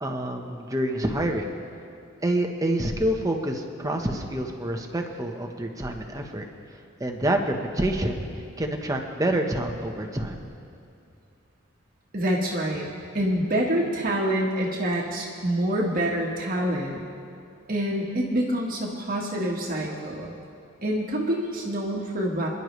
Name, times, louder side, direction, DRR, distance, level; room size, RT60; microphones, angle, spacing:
voice 1, 0.0-1.5 2.2-6.4 7.0-8.3 8.6-10.4, right 1 dB, 15° right, 3 dB, 1.1 m, -27 dB
voice 2, 12.1-12.9 13.1-17.0 17.7-20.3 20.8-22.5, right 1 dB, 45° right, -2 dB, 1.5 m, -26 dB
28.5 x 11.0 x 3.2 m, 2.5 s
head